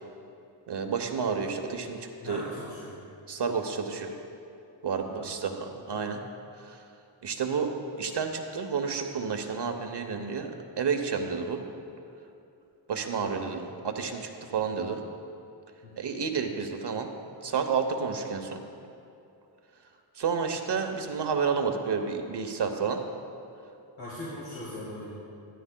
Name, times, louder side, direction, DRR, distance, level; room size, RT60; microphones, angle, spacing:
voice 1, 0.7-2.4 3.3-4.1 4.8-6.2 6.7-6.8 7.2-7.7 8.0-10.5 10.8-11.6 12.9-15.0 16.0-17.1 17.4-18.6 20.2-23.0, right 5 dB, 60° right, 5 dB, 0.9 m, -30 dB
voice 2, 2.2-2.9 5.0-5.4 13.2-13.5 14.6-14.7 15.8-16.1 24.0-25.1, left 1 dB, 70° left, -7 dB, 2.6 m, -40 dB
14.0 x 13.5 x 2.2 m, 2.7 s
wide cardioid pair, 120°, 47 cm